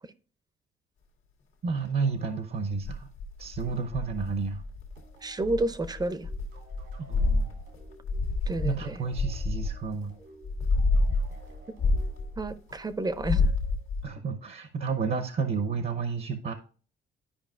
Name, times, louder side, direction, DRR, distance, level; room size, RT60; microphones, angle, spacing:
voice 1, 1.6-3.1 3.4-4.6 7.0-7.5 8.6-10.1 14.0-16.5, right 5 dB, 50° right, 0.8 m, -31 dB
sound 1, 2.7-5.0 5.4-10.0 10.4-12.7 13.1-14.0, left 3 dB, 85° left, 1.6 m, -28 dB
sound 2, 4.9-14.2, equal, 90° right, 2.5 m, -55 dB
voice 2, 5.2-6.3 8.5-9.0 12.4-13.5, right 2 dB, 20° right, 0.5 m, -30 dB
11.5 x 5.0 x 2.4 m
cardioid pair, 90°, 20 cm